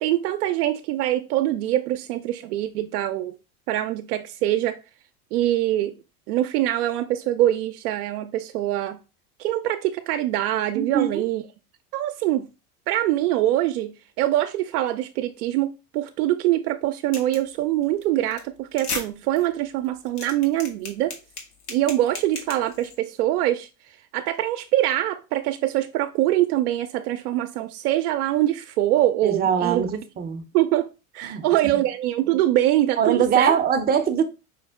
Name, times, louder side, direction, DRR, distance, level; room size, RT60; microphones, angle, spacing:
voice 1, 0.0-3.4 3.7-4.8 5.3-5.9 6.3-9.0 9.4-11.4 11.9-12.5 12.9-21.1 21.7-29.9 30.5-33.6, right 14 dB, 80° right, 0.5 m, -24 dB
voice 2, 10.7-11.2 29.2-30.4 31.3-31.4 31.7-31.8 33.0-34.2, right 7 dB, 20° right, 0.5 m, -22 dB
sound 1, 17.1-17.5 17.8-18.0 18.3-18.4 18.7-19.0 19.4-19.5 19.8-22.9, left 4 dB, 80° left, 1.3 m, -34 dB
5.1 x 2.1 x 3.4 m
supercardioid pair, 105°, 44 cm